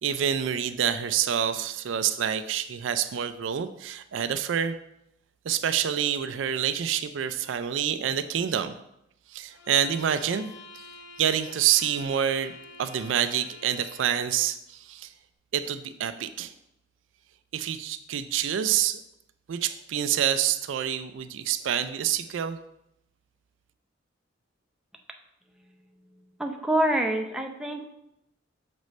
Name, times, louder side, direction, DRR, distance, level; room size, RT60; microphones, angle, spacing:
voice 1, 0.0-4.7 5.4-8.8 9.3-10.5 11.2-12.5 12.8-15.1 15.5-16.5 17.5-19.0 19.5-22.6, right 9 dB, 70° right, 11 dB, 0.4 m, -27 dB
sound 1, 9.5-14.5, left 3 dB, 65° left, 0.6 m, -47 dB
voice 2, 26.4-27.9, right 1 dB, 5° right, 2 dB, 0.5 m, -26 dB
6.4 x 5.2 x 3.1 m, 0.82 s
head